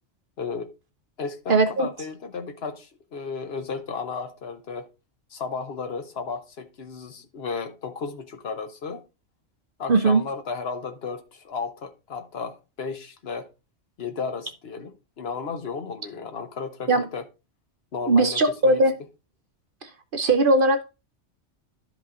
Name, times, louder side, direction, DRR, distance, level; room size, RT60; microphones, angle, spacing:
voice 1, 0.4-0.7 1.2-4.9 5.3-9.0 9.8-13.5 14.0-17.2 17.9-18.8, left 5 dB, 60° left, 1.0 m, -34 dB
voice 2, 1.5-1.9 9.9-10.2 16.9-17.0 18.1-19.0 19.8-20.8, right 2 dB, 55° right, 0.8 m, -20 dB
12.0 x 5.2 x 2.5 m
omnidirectional pair, 1.2 m